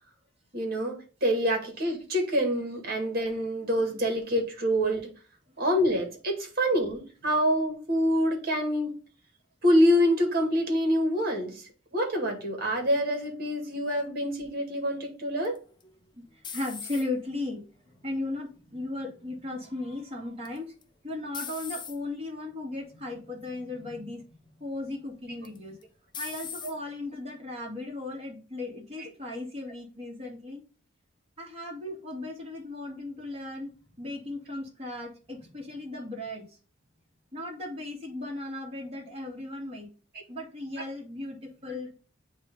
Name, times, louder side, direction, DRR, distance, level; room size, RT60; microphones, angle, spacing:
voice 1, 0.5-5.1 5.6-8.9 9.6-11.6 11.9-15.6 26.6-26.7 29.0-29.1 41.7-41.8, equal, 50° right, 2.1 m, -26 dB
sound 1, 15.4-17.4 17.9-18.4 20.4-20.8 21.3-22.0 22.8-23.0 23.4-23.5 25.4-25.8 26.1-26.8, left 7 dB, 25° left, 0.6 m, -40 dB
voice 2, 16.5-17.6 18.0-20.7 21.0-25.8 26.2-30.6 31.4-36.6 37.3-39.9 40.3-41.9, left 2 dB, 30° right, 2.5 m, -36 dB
8.6 x 2.9 x 5.4 m
head